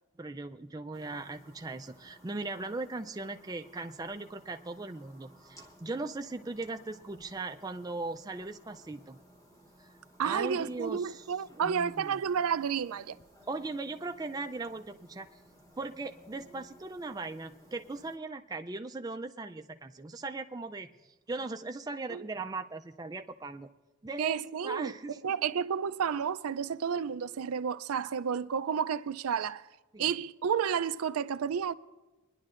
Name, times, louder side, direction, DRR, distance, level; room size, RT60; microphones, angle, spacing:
voice 1, 0.2-9.2 9.8-9.9 10.2-11.2 11.5-12.2 13.5-15.3 15.8-20.9 21.3-23.7 24.0-25.2 29.9-30.1, right 3 dB, 15° right, 0.3 m, -39 dB
sound 1, 0.9-18.2, equal, 15° left, 0.9 m, -58 dB
voice 2, 10.2-13.2 22.1-22.2 24.2-24.9 25.2-29.7 30.0-31.7, right 7 dB, 80° right, 0.4 m, -31 dB
23.5 x 10.5 x 2.5 m
head